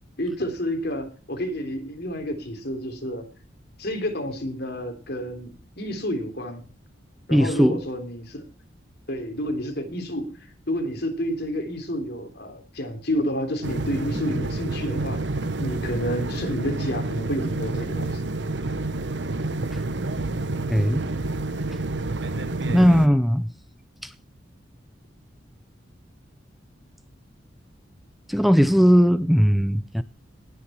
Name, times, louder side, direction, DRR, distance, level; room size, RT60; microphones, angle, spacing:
voice 1, 0.2-3.3 3.8-5.5 5.8-6.6 7.3-8.4 9.1-10.3 10.7-15.2 15.6-18.2 22.7-22.9, equal, 55° left, 3.6 m, -30 dB
voice 2, 7.3-7.8 19.7-19.8 20.7-21.0 22.7-23.5 24.0-24.1 28.3-30.0, equal, ahead, 0.5 m, -18 dB
sound 1, 13.6-23.1, right 2 dB, 65° right, 1.0 m, -29 dB
19.5 x 7.0 x 4.5 m
head